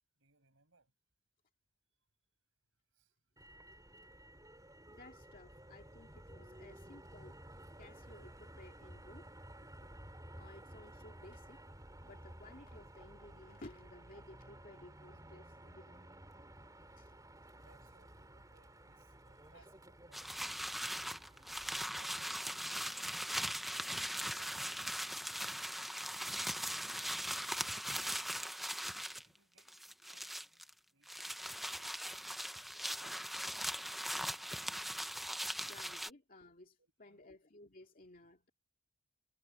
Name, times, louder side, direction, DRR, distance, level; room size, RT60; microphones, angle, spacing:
voice 1, 0.2-0.9 2.9-3.2 17.6-20.6 21.3-24.1 24.3-28.7 29.2-32.3 32.6-34.2 36.8-37.3, right 3 dB, 60° right, 6.3 m, -69 dB
Motor vehicle (road), 3.4-21.9, right 1 dB, 15° right, 3.4 m, -55 dB
voice 2, 4.9-7.4 7.8-9.3 9.6-9.7 10.4-11.6 12.0-16.1 17.0-17.1 19.5-19.6 35.6-38.5, left 2 dB, 40° left, 2.3 m, -57 dB
sound 1, 20.1-29.3 29.6-30.7 31.1-36.1, equal, ahead, 0.7 m, -40 dB
head